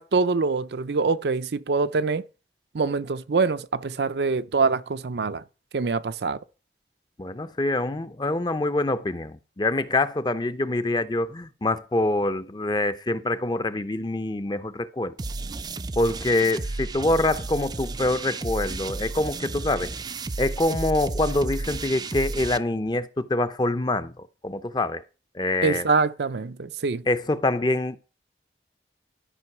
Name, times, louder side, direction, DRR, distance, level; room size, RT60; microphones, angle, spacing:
voice 1, 0.0-2.2 2.7-5.4 5.7-6.4 25.6-27.0, right 4 dB, 70° right, 0.5 m, -24 dB
voice 2, 7.2-15.1 16.0-19.9 20.4-25.0 25.3-25.9 27.1-28.0, left 2 dB, 25° left, 0.6 m, -25 dB
sound 1, 15.2-22.6, right 3 dB, 25° right, 0.4 m, -33 dB
12.5 x 5.3 x 6.0 m
head